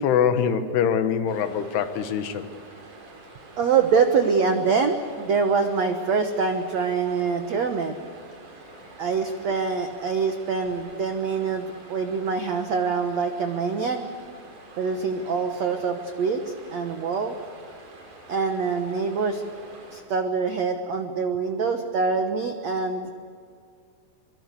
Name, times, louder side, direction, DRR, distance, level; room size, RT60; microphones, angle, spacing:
voice 1, 0.0-2.4, left 7 dB, 75° left, 9 dB, 3.2 m, -23 dB
sound 1, 1.3-20.0, right 2 dB, 45° right, 5.6 m, -47 dB
voice 2, 3.6-7.9 9.0-14.1 14.8-17.4 18.3-19.4 19.9-23.1, right 5 dB, 80° right, 6 dB, 1.5 m, -25 dB
24.0 x 24.0 x 8.3 m, 2.2 s
omnidirectional pair, 5.0 m